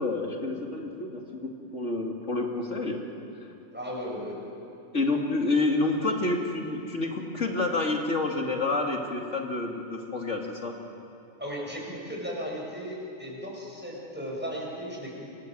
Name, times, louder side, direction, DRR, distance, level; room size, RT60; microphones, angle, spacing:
voice 1, 0.0-3.0 4.9-10.7, left 2 dB, 65° left, 1 dB, 3.1 m, -28 dB
voice 2, 3.7-4.4 11.4-15.3, equal, 10° right, -3 dB, 7.3 m, -36 dB
29.5 x 25.5 x 7.9 m, 2.8 s
omnidirectional pair, 1.4 m